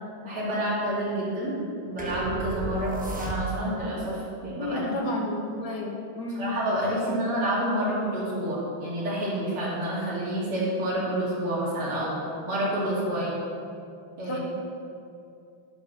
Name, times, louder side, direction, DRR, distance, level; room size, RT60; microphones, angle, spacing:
voice 1, 0.2-1.6 1.8-4.9 6.3-12.1 12.5-13.4 14.2-14.4, right 1 dB, 90° right, -7 dB, 3.9 m, -28 dB
sound 1, 2.0-3.9, right 1 dB, 10° right, 0.3 m, -32 dB
voice 2, 4.6-6.4 14.3-14.4, left 2 dB, 60° left, 0 dB, 1.7 m, -32 dB
12.0 x 5.3 x 6.5 m, 2.5 s
omnidirectional pair, 2.3 m